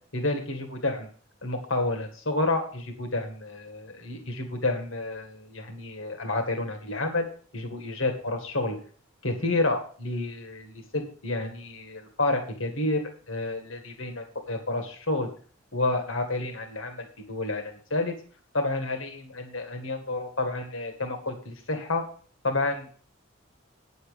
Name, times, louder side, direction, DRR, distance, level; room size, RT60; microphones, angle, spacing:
voice 1, 0.1-1.1 1.4-7.3 7.5-8.8 9.2-15.3 15.7-18.2 18.5-22.0 22.4-23.0, left 2 dB, 70° left, 5 dB, 2.0 m, -30 dB
9.4 x 7.3 x 5.3 m, 0.44 s
head